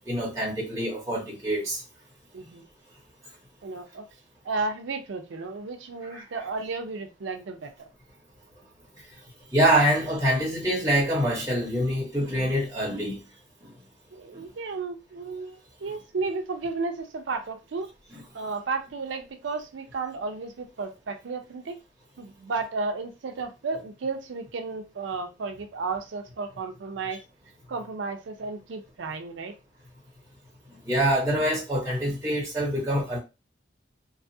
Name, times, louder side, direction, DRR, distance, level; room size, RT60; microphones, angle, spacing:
voice 1, 0.1-1.8 6.0-6.2 9.5-13.2 30.8-33.2, equal, 15° right, 0.9 m, -25 dB
voice 2, 3.6-4.0 4.4-7.9 14.1-17.9 18.3-21.8 22.2-27.2 27.7-29.5, right 4 dB, 80° right, 0.5 m, -33 dB
2.6 x 2.3 x 2.6 m
head